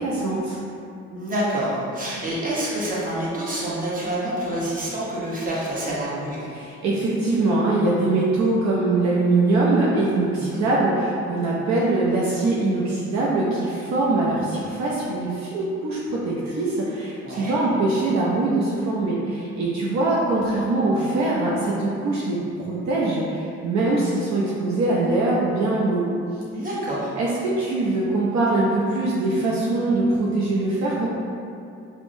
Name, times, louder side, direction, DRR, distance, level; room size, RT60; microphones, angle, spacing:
voice 1, 0.0-0.6 6.5-22.4 22.7-26.0 27.2-31.1, right 2 dB, 65° right, -5 dB, 0.5 m, -22 dB
voice 2, 1.1-6.4 10.3-10.6 17.2-17.6 26.5-27.1, right 1 dB, 25° right, -7 dB, 0.9 m, -27 dB
3.5 x 2.0 x 2.6 m, 2.5 s
cardioid pair, 90°, 30 cm